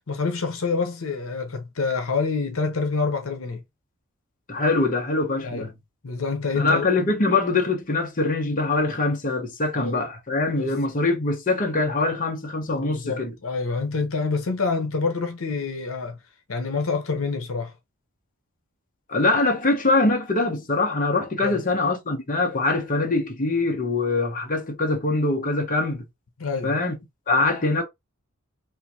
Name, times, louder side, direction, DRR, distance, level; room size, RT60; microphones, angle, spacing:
voice 1, 0.1-3.6 5.4-5.7 6.0-6.9 9.7-10.0 10.5-10.7 12.7-16.2 16.5-17.7 21.4-21.6 26.4-26.8, left 4 dB, 75° left, 0.9 m, -27 dB
voice 2, 4.5-5.7 6.5-13.3 19.1-26.0 26.6-26.9 27.3-27.8, left 2 dB, 40° left, 0.8 m, -23 dB
3.6 x 2.6 x 2.8 m
head